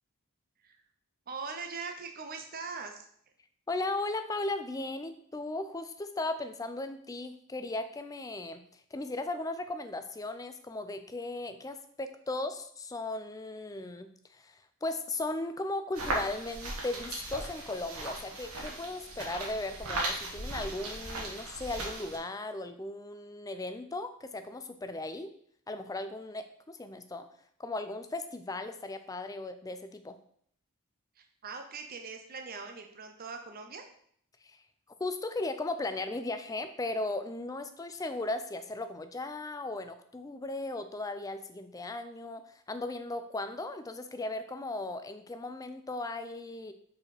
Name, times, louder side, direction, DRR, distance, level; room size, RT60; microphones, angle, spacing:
voice 1, 1.3-3.1 31.2-33.9, right 4 dB, 40° right, 5 dB, 0.6 m, -41 dB
voice 2, 3.7-25.3 25.7-27.3 27.6-30.2 34.4-34.6 35.0-46.7, left 2 dB, 15° left, 9 dB, 0.4 m, -37 dB
sound 1, 15.9-22.2, right 2 dB, 75° right, 1.4 m, -37 dB
4.9 x 4.2 x 4.9 m, 0.64 s
head